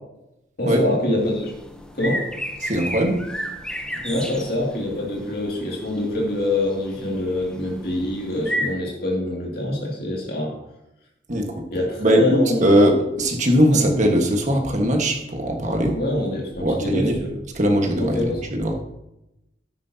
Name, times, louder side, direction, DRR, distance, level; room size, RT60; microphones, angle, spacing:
voice 1, 0.6-1.5 1.9-2.2 4.0-10.5 11.7-12.7 13.7-13.8 15.9-17.3 18.0-18.4, left 1 dB, 55° left, -3 dB, 2.4 m, -25 dB
sound 1, 1.2-8.7, equal, 5° left, 0.8 m, -33 dB
voice 2, 2.6-3.2 4.0-4.1 11.3-11.6 12.0-16.0 16.6-17.2 17.5-18.7, equal, 40° right, 2 dB, 1.5 m, -20 dB
11.5 x 9.6 x 2.8 m, 0.89 s
head